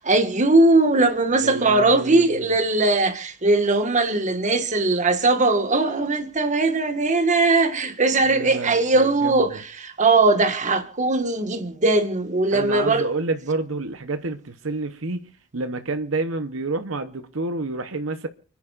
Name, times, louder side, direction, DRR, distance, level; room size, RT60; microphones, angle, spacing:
voice 1, 0.0-13.1, right 2 dB, 35° right, 1.6 m, -20 dB
voice 2, 1.4-2.5 8.2-9.5 12.5-18.3, right 3 dB, 75° right, 0.9 m, -29 dB
29.5 x 10.5 x 2.5 m
head